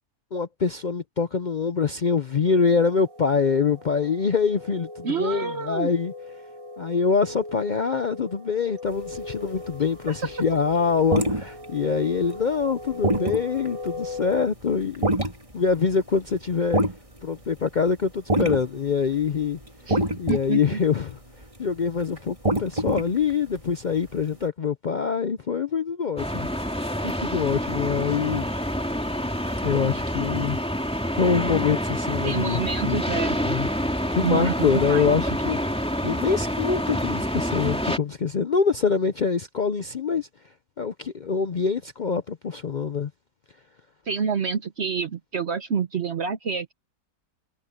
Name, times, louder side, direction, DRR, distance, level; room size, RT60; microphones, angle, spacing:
voice 1, 0.3-6.1 6.8-15.1 15.5-16.8 17.2-21.2 21.6-26.5 27.0-28.5 29.6-30.6 31.1-33.0 33.4-33.7 34.1-35.6 36.0-40.3 40.8-43.1, left 6 dB, 65° left, 0.4 m, -25 dB
sound 1, 2.5-14.5, left 3 dB, 65° right, 2.8 m, -39 dB
voice 2, 5.0-5.9 10.1-10.2 19.9-20.0 20.3-20.8 32.2-33.4 34.2-35.4 44.1-46.7, right 6 dB, 50° right, 1.0 m, -28 dB
sound 2, 9.0-10.0 10.4-18.0 18.3-18.9 19.1-24.3, right 1 dB, 20° right, 2.8 m, -27 dB
sound 3, 26.2-38.0, equal, 5° left, 3.0 m, -27 dB
omnidirectional pair, 1.6 m